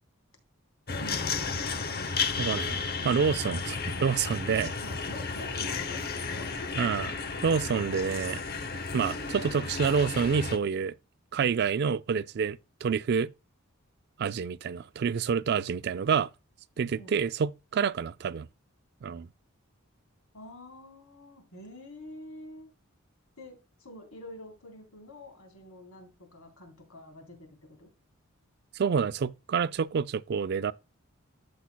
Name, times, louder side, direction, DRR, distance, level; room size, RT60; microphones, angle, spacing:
sound 1, 0.9-10.6, left 4 dB, 45° left, 0.9 m, -33 dB
voice 1, 1.0-2.1 3.6-3.8 4.8-6.9 16.9-17.2 20.3-22.7 23.4-27.9, left 1 dB, 80° left, 3.5 m, -47 dB
voice 2, 2.4-2.8 3.0-4.7 6.8-7.1 7.4-8.4 8.9-10.9 11.3-13.3 14.2-16.3 16.8-18.5 19.0-19.3 28.7-30.7, right 6 dB, 50° right, 0.3 m, -28 dB
14.5 x 5.7 x 2.2 m
head